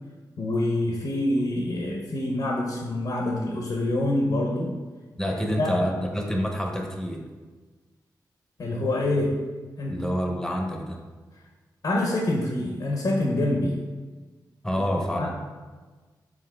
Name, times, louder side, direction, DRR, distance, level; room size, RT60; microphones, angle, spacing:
voice 1, 0.4-4.7 5.3-5.7 8.6-9.3 9.8-10.0 11.8-13.8 14.7-14.8 15.2-15.3, left 1 dB, 60° left, -1 dB, 0.6 m, -26 dB
voice 2, 5.2-7.3 9.9-11.0 14.6-15.3, equal, 5° left, 1 dB, 0.7 m, -27 dB
5.0 x 3.4 x 2.2 m, 1.3 s
cardioid pair, 50°, 8 cm